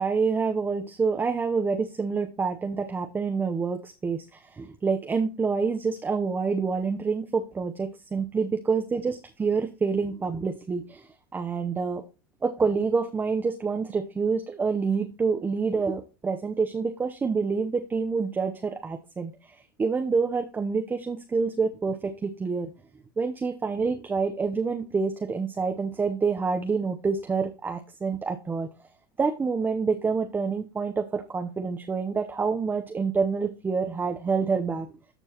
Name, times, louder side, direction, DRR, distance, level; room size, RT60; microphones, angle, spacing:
voice 1, 0.0-12.0 12.4-22.7 23.2-28.7 29.2-34.9, right 5 dB, 15° right, 6 dB, 0.7 m, -27 dB
13.5 x 4.5 x 2.9 m, 0.31 s
supercardioid pair, 115°, 12 cm